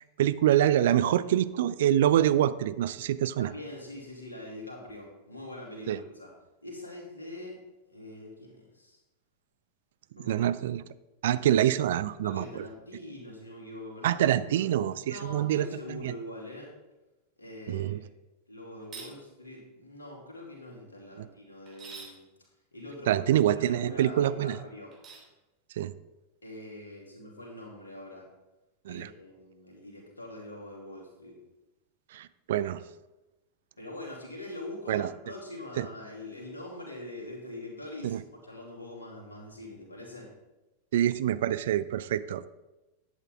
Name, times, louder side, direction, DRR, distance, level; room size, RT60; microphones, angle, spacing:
voice 1, 0.0-3.5 5.9-6.0 10.2-10.8 11.2-12.7 14.0-16.1 17.7-18.0 21.2-21.3 23.1-24.6 25.8-25.9 28.9-29.1 32.1-32.8 34.9-35.1 35.8-35.9 38.0-38.2 40.9-42.5, right 11 dB, 55° right, 15 dB, 0.4 m, -26 dB
voice 2, 0.9-1.2 3.4-6.3 6.6-7.6 7.9-9.0 10.1-10.4 12.2-14.7 15.0-16.7 17.4-18.1 18.5-22.2 22.7-23.2 23.5-24.9 26.4-28.3 28.9-31.4 33.8-38.2 38.4-40.3, left 1 dB, 75° left, -2 dB, 2.7 m, -43 dB
sound 1, 18.8-19.1 21.7-22.2 24.9-25.3, right 5 dB, 25° right, 2.9 m, -45 dB
11.0 x 8.2 x 3.6 m, 1.0 s
figure-of-eight pair, 90°, 0 cm